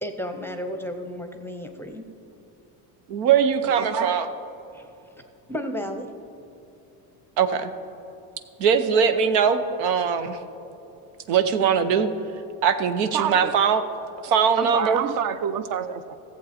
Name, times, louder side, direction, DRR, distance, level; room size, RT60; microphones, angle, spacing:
voice 1, 0.0-2.1 4.7-5.1 5.5-6.1, equal, 5° left, 0.6 m, -33 dB
voice 2, 3.1-4.3 7.4-7.7 8.6-10.4 11.3-12.1 12.6-13.8 14.2-15.0, right 7 dB, 90° right, 0.9 m, -21 dB
voice 3, 3.8-4.2 13.1-13.6 14.6-16.1, right 9 dB, 45° right, 0.7 m, -28 dB
14.5 x 7.6 x 4.2 m
supercardioid pair, 105°, 48 cm